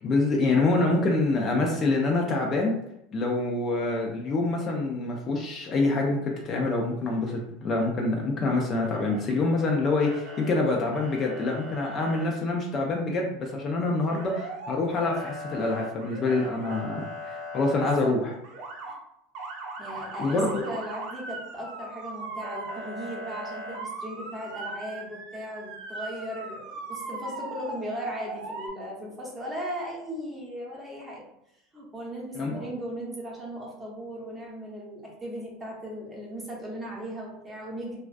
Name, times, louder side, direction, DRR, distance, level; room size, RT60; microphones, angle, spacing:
voice 1, 0.0-2.8 3.1-18.3 20.2-20.5 32.4-32.6, left 2 dB, 30° left, 0 dB, 0.3 m, -26 dB
Motor vehicle (road) / Siren, 8.8-9.7 10.0-10.6 10.9-12.3 14.1-14.7 15.0-18.0 18.4-18.9 19.3-28.7, right 1 dB, 50° right, 0.4 m, -39 dB
voice 2, 17.8-18.2 18.9-19.0 19.8-31.2 31.7-38.0, equal, 10° right, -4 dB, 0.7 m, -37 dB
2.3 x 2.2 x 2.4 m, 0.80 s
supercardioid pair, 135°, 0 cm